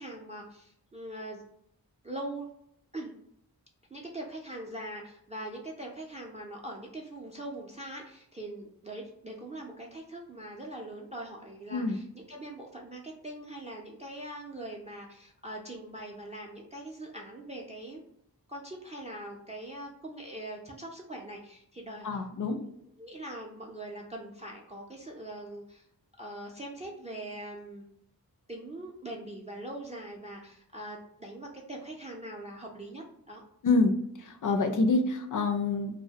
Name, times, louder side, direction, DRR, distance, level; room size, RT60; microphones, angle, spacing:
voice 1, 0.0-1.4 2.0-2.5 2.9-3.1 3.9-18.0 18.5-22.7 23.0-25.9 26.2-27.9 28.5-33.4, right 1 dB, 20° right, 0 dB, 0.3 m, -42 dB
voice 2, 22.0-22.6 33.6-35.9, left 3 dB, 55° left, 5 dB, 0.4 m, -27 dB
2.2 x 2.0 x 2.7 m, 0.72 s
wide cardioid pair, 95°, 37 cm